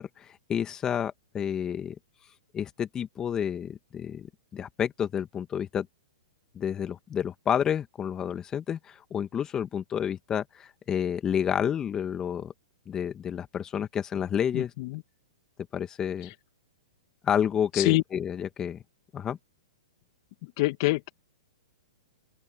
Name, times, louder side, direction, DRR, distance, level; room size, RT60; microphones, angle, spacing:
voice 1, 0.0-1.9 2.5-4.3 4.5-5.9 6.5-12.5 12.9-14.7 15.7-16.3 17.2-18.8 19.1-19.4, left 8 dB, 20° left, 1.6 m, -30 dB
voice 2, 14.5-15.0 16.2-16.3 17.7-18.0 20.4-21.1, left 21 dB, 50° left, 1.8 m, -26 dB
open air
hypercardioid pair, 120°, 3 cm